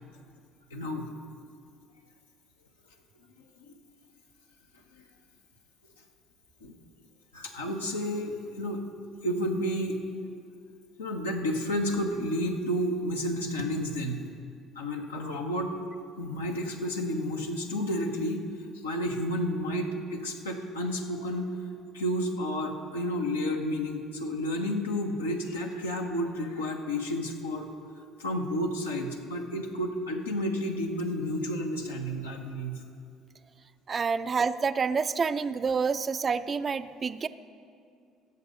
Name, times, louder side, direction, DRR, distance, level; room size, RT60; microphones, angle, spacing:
voice 1, 0.7-1.1 3.7-3.8 6.6-6.7 7.3-8.8 9.2-10.0 11.0-14.3 14.7-15.7 16.2-18.5 18.8-21.5 21.9-27.7 28.2-32.8 33.9-34.2, equal, 85° left, 1 dB, 0.9 m, -31 dB
voice 2, 33.9-37.3, right 5 dB, 35° right, 13 dB, 0.4 m, -28 dB
15.5 x 6.7 x 5.0 m, 2.3 s
figure-of-eight pair, 55°, 0 cm